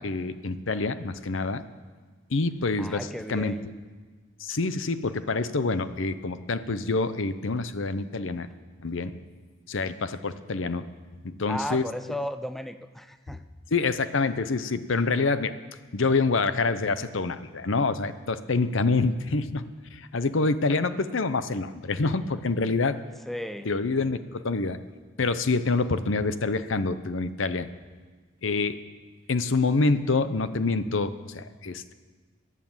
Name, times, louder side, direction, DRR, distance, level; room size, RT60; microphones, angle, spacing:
voice 1, 0.0-1.6 2.3-3.5 4.4-8.5 8.8-9.2 9.7-10.8 11.2-11.8 13.7-15.6 15.9-19.6 19.9-23.0 23.6-24.8 25.2-27.7 28.4-28.8 29.3-31.9, left 3 dB, 70° left, 12 dB, 0.8 m, -26 dB
voice 2, 2.8-3.8 11.5-13.4 23.3-23.7, equal, ahead, 9 dB, 0.5 m, -35 dB
21.0 x 8.5 x 7.3 m, 1.4 s
head